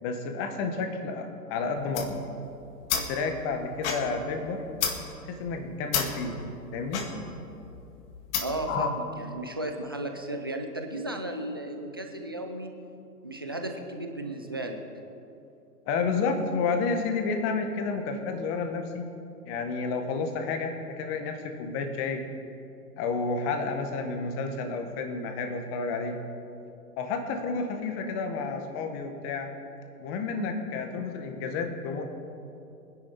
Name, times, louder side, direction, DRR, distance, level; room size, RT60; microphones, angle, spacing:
voice 1, 0.0-2.2 3.1-4.6 5.3-6.3 6.7-7.0 8.7-8.9 15.8-19.1 19.4-22.2 23.0-26.2 27.0-29.5 30.0-32.0, left 4 dB, 25° left, 5 dB, 1.7 m, -30 dB
sound 1, 1.8-8.7, left 6 dB, 45° left, 1.9 m, -33 dB
voice 2, 8.4-12.7 13.2-14.8, right 1 dB, 15° right, 4 dB, 0.3 m, -34 dB
22.5 x 10.5 x 4.4 m, 2.7 s
hypercardioid pair, 125°, 48 cm